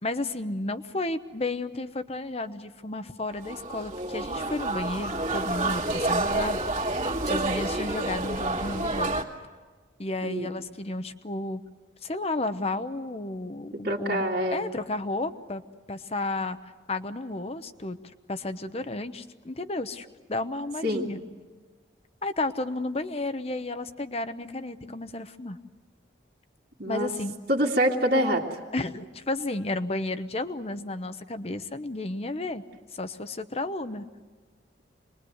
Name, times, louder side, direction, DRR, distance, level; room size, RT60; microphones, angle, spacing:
voice 1, 0.0-6.6 7.2-9.2 10.0-11.6 12.0-14.3 14.5-15.6 15.9-18.0 18.3-21.2 22.2-25.6 26.8-27.4 28.7-32.6 32.9-34.1, left 2 dB, 30° left, 11 dB, 0.9 m, -32 dB
sound 1, 3.3-9.2, right 2 dB, 35° right, 2.4 m, -29 dB
voice 2, 10.2-10.5 13.8-14.6 20.8-21.1 26.8-27.1 27.5-28.4, equal, 50° right, -2 dB, 2.3 m, -25 dB
26.5 x 21.5 x 8.0 m, 1.4 s
head